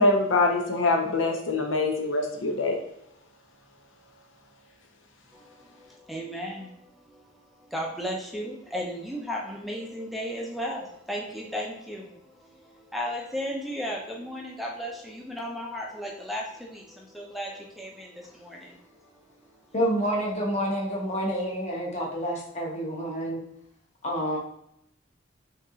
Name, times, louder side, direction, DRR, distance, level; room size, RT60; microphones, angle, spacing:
voice 1, 0.0-2.8, left 2 dB, 80° left, 2 dB, 0.8 m, -24 dB
voice 2, 5.3-19.7, equal, ahead, -2 dB, 0.5 m, -36 dB
voice 3, 19.7-23.4 24.0-24.4, equal, 35° left, -2 dB, 1.0 m, -28 dB
5.7 x 2.9 x 2.4 m, 0.76 s
head